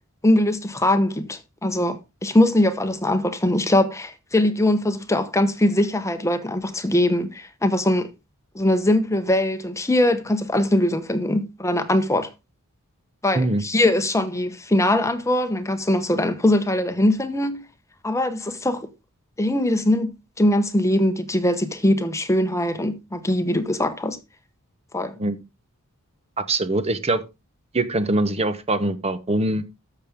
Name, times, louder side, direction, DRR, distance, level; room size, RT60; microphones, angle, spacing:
voice 1, 0.2-8.1 8.5-12.3 13.2-17.6 18.0-18.9 19.4-24.2 24.9-25.1, left 1 dB, 15° left, 0.9 m, -21 dB
voice 2, 13.3-13.6 25.2-25.4 26.4-27.2 27.7-29.6, right 2 dB, 30° right, 1.0 m, -23 dB
13.0 x 6.8 x 3.6 m
head